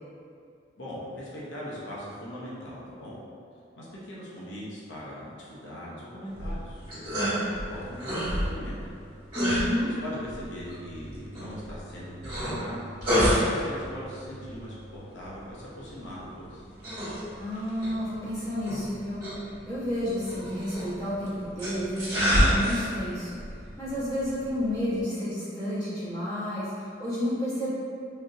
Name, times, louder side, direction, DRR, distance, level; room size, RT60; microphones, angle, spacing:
voice 1, 0.8-3.2 3.8-8.8 10.0-12.8 13.2-16.6, equal, 85° left, -7 dB, 0.7 m, -40 dB
sound 1, 6.3-25.0, equal, 25° right, 1.2 m, -31 dB
voice 2, 9.3-9.9 17.3-19.2 19.7-23.4 23.8-27.7, left 1 dB, 20° left, -12 dB, 1.0 m, -30 dB
3.3 x 2.7 x 2.5 m, 2.4 s
head